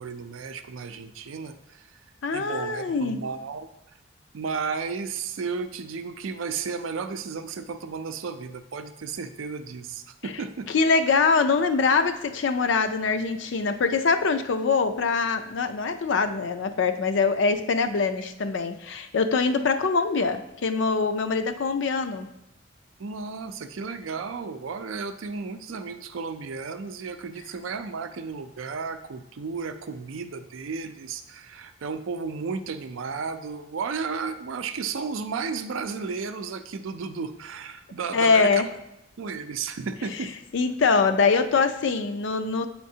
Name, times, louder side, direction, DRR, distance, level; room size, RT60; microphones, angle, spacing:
voice 1, 0.0-1.9 2.3-3.7 4.3-10.7 23.0-38.6 39.2-40.3, right 5 dB, 90° right, 9 dB, 0.4 m, -33 dB
voice 2, 2.2-3.2 10.7-22.3 38.1-38.7 40.5-42.7, left 4 dB, 70° left, 9 dB, 0.4 m, -23 dB
8.4 x 4.4 x 2.7 m, 0.88 s
head